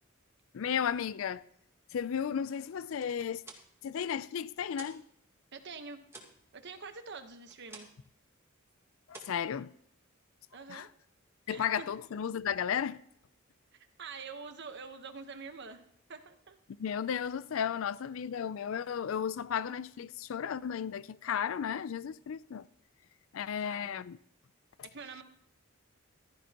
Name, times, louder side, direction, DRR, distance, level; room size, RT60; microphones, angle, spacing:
voice 1, 0.5-1.4 1.9-3.4 3.8-5.0 9.1-9.7 10.7-10.9 11.5-13.0 16.7-22.7 23.3-24.2, left 8 dB, 70° left, 0.4 m, -34 dB
sound 1, 3.4-5.1 5.4-8.1 8.4-8.7 9.1-10.2, right 2 dB, 15° right, 1.8 m, -53 dB
voice 2, 5.5-6.0 6.5-7.9 10.5-10.9 11.5-11.9 13.7-15.8 16.1-16.6 23.6-24.0 24.8-25.2, right 5 dB, 55° right, 1.1 m, -46 dB
15.0 x 13.0 x 2.9 m
head